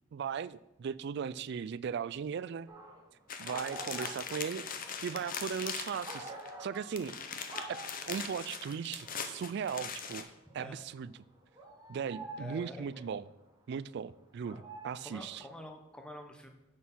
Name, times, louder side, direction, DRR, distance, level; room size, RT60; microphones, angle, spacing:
voice 1, 0.1-2.7 3.4-4.7 5.0-6.3 6.6-7.2 7.7-7.8 8.1-10.3 10.5-11.1 11.9-13.3 13.7-15.4, right 7 dB, 55° right, 18 dB, 0.3 m, -37 dB
sound 1, 2.7-3.1 3.5-7.2 7.5-8.4 8.7-10.7 11.2-13.2 14.1-15.6, right 2 dB, 20° right, 1.6 m, -48 dB
sound 2, 3.3-6.5 6.7-10.2, left 6 dB, 40° left, 0.7 m, -41 dB
voice 2, 12.4-12.8 14.5-14.6 15.0-16.5, left 1 dB, 5° left, 4 dB, 0.9 m, -47 dB
7.7 x 6.3 x 5.5 m, 0.91 s
head